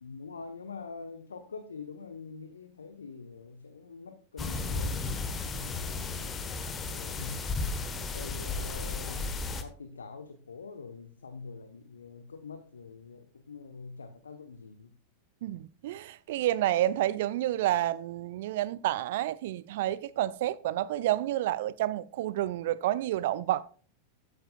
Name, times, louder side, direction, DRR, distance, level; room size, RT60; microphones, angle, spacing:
voice 1, 0.0-5.1 5.5-7.5 8.0-14.9, left 4 dB, 70° left, 0.9 m, -45 dB
sound 1, 4.4-9.6, left 3 dB, 20° left, 1.3 m, -34 dB
voice 2, 15.4-23.6, right 13 dB, 55° right, 0.4 m, -29 dB
13.5 x 9.3 x 2.3 m
figure-of-eight pair, 90°, 0 cm